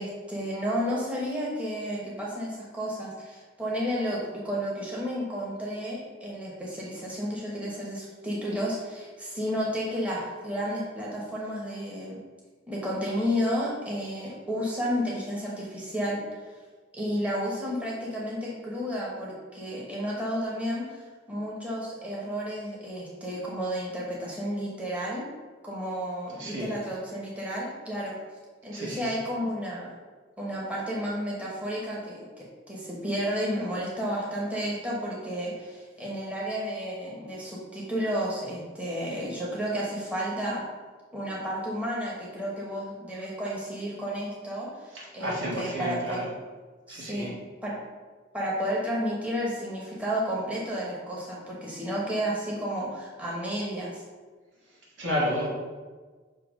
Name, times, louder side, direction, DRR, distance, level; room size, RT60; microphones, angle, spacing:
voice 1, 0.0-12.2 12.7-16.2 16.9-25.3 25.6-28.2 28.6-29.9 30.4-40.6 41.1-46.2 46.9-47.3 47.6-47.7 48.3-54.0, equal, 5° right, -5 dB, 1.1 m, -32 dB
voice 2, 26.4-26.8 28.7-29.1 44.9-46.3 46.9-47.3 55.0-55.5, equal, 80° right, -5 dB, 1.8 m, -31 dB
6.6 x 2.9 x 5.2 m, 1.4 s
head